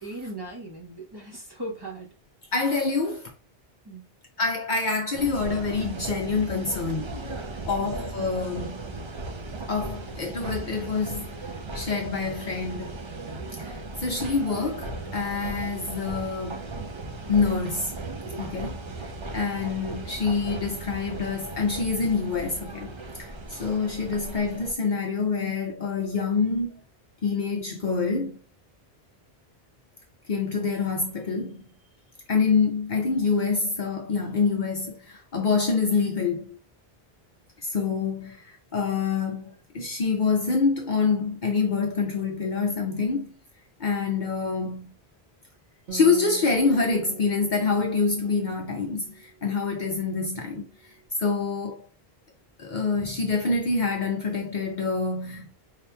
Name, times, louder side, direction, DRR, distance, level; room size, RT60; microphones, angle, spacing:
voice 1, 0.0-2.1 3.8-4.0 7.5-7.9, right 1 dB, 25° right, 0.9 m, -38 dB
voice 2, 2.5-3.3 4.4-7.2 7.6-8.9 9.7-11.3 11.7-13.0 13.6-16.7 17.3-18.0 18.4-18.8 19.3-26.8 27.2-28.4 30.3-31.7 32.3-36.6 37.6-43.3 43.8-44.9 45.9-50.7 51.2-51.9 52.6-55.5, left 4 dB, 55° left, 0.7 m, -26 dB
sound 1, 5.1-24.7, right 2 dB, 40° right, 0.4 m, -37 dB
Acoustic guitar, 45.9-49.6, right 5 dB, 85° right, 1.2 m, -43 dB
4.8 x 2.8 x 2.2 m
omnidirectional pair, 1.1 m